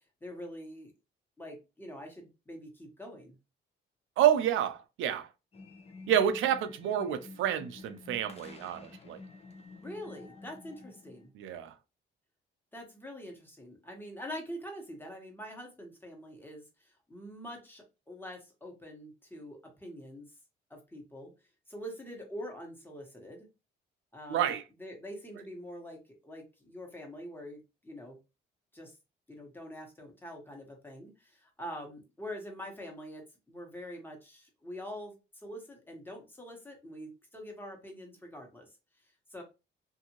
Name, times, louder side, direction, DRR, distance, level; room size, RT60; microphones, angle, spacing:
voice 1, 0.2-0.9 1.4-3.3 9.8-11.3 12.7-16.6 17.1-20.3 20.7-21.3 21.7-23.5 24.1-28.2 28.7-28.9 29.3-38.7 39.3-39.4, equal, 10° left, 1.2 m, -45 dB
voice 2, 4.2-5.3 6.1-9.2 11.3-11.7 24.3-24.6, right 10 dB, 85° right, 0.5 m, -29 dB
sound 1, 5.5-11.3, left 3 dB, 30° left, 0.8 m, -50 dB
2.6 x 2.6 x 2.9 m
cardioid pair, 90°, 20 cm